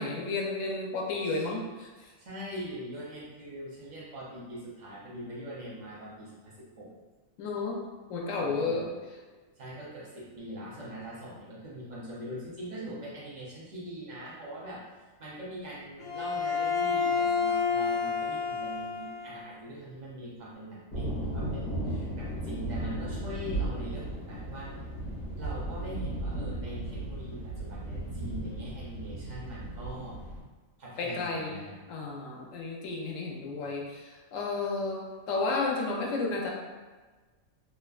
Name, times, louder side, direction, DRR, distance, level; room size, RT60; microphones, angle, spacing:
voice 1, 0.0-1.9 7.4-7.8 8.1-8.9 31.0-36.5, left 3 dB, 75° left, -1 dB, 0.9 m, -32 dB
voice 2, 2.2-6.9 8.4-8.9 9.6-14.9 15.2-24.7 25.4-30.2 30.8-31.8, equal, 50° right, -6 dB, 0.5 m, -42 dB
Bowed string instrument, 16.0-19.4, left 6 dB, 50° left, 0.5 m, -29 dB
sound 1, 20.9-30.4, right 1 dB, 35° left, 0.9 m, -35 dB
2.9 x 2.1 x 2.3 m, 1.3 s
omnidirectional pair, 1.4 m